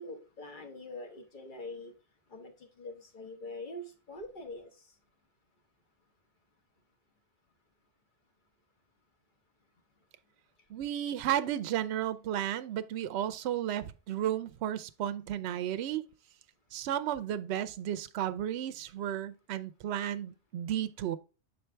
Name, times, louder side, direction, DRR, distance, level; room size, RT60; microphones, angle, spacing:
voice 1, 0.0-1.9 2.3-4.9, left 2 dB, 45° left, 1.3 m, -44 dB
voice 2, 10.7-16.1 16.7-21.2, right 11 dB, 70° right, 0.8 m, -33 dB
7.2 x 4.4 x 3.3 m
omnidirectional pair, 1.2 m